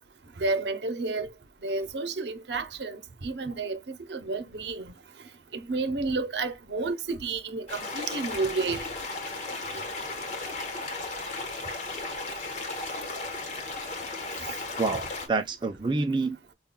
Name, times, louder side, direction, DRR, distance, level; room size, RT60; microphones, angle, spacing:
voice 1, 0.4-1.3 1.6-4.9 5.5-8.8, right 3 dB, 75° right, 0.7 m, -31 dB
sound 1, 7.7-15.3, left 3 dB, 40° left, 1.1 m, -35 dB
voice 2, 14.8-16.5, right 3 dB, 25° right, 0.4 m, -28 dB
5.4 x 2.3 x 2.2 m
head